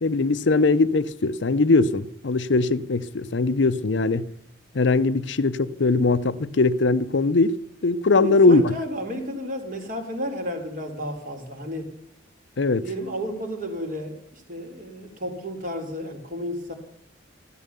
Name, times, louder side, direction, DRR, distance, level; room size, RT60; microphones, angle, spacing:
voice 1, 0.0-4.3 4.7-7.6 7.8-8.7 12.6-12.9, left 3 dB, 65° left, 0.6 m, -20 dB
voice 2, 8.1-11.9 12.8-16.7, equal, 45° right, 3.3 m, -32 dB
14.5 x 13.0 x 6.8 m
head